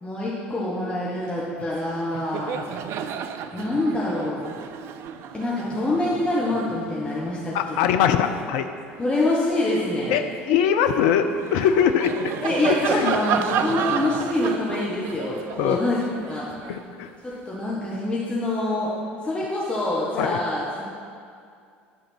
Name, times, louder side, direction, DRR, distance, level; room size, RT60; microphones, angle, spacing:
voice 1, 0.0-2.7 3.5-4.4 5.3-7.8 9.0-10.3 12.4-16.4 17.2-18.9 19.2-20.8, left 2 dB, 15° left, -7 dB, 1.3 m, -25 dB
Laughter, 1.6-1.8 2.0-8.8 9.3-17.4, right 8 dB, 45° right, 0.4 m, -32 dB
voice 2, 7.5-8.7 10.1-12.3 12.9-13.2 15.6-15.8 16.7-17.1 20.2-20.4, left 8 dB, 55° left, 7 dB, 0.4 m, -22 dB
11.0 x 3.8 x 5.9 m, 2.3 s
figure-of-eight pair, 65°, 6 cm